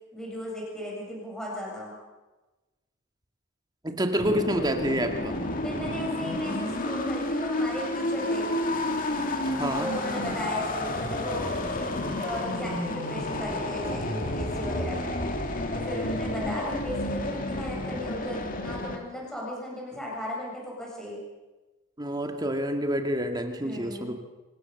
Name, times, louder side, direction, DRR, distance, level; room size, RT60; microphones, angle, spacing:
voice 1, 0.1-2.0 5.6-8.5 9.8-15.2 15.7-21.2 23.6-24.2, equal, 5° left, -3 dB, 7.8 m, -36 dB
voice 2, 3.8-5.4 9.5-9.9 22.0-24.1, equal, 20° right, 5 dB, 2.1 m, -28 dB
sound 1, 4.2-19.0, left 1 dB, 40° left, 2.4 m, -30 dB
26.5 x 17.5 x 7.1 m, 1.2 s
head